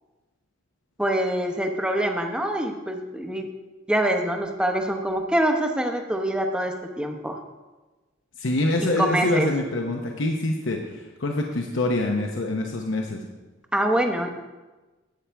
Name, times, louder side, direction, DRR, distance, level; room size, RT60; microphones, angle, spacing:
voice 1, 1.0-3.4 3.9-7.4 8.8-9.5 13.7-14.3, right 1 dB, 5° right, 4 dB, 0.8 m, -25 dB
voice 2, 8.4-13.2, left 2 dB, 70° left, 1 dB, 0.8 m, -25 dB
11.5 x 8.8 x 3.4 m, 1.2 s
head